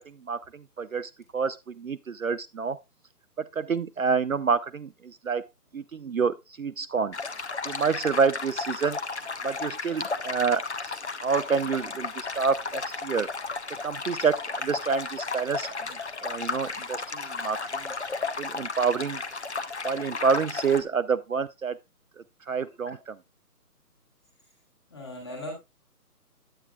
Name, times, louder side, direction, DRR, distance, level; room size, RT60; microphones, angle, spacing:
voice 1, 0.8-2.8 3.6-4.9 5.2-5.4 5.7-7.1 7.7-9.0 9.4-10.6 11.2-13.3 13.8-15.7 16.2-17.6 18.4-19.2 19.8-21.8 22.5-23.1, right 5 dB, 60° right, 0.5 m, -27 dB
sound 1, 7.1-20.8, left 4 dB, 45° left, 0.8 m, -34 dB
voice 2, 22.6-23.0 24.9-25.5, left 1 dB, 15° left, 1.6 m, -39 dB
9.5 x 8.7 x 2.3 m
hypercardioid pair, 175°, 47 cm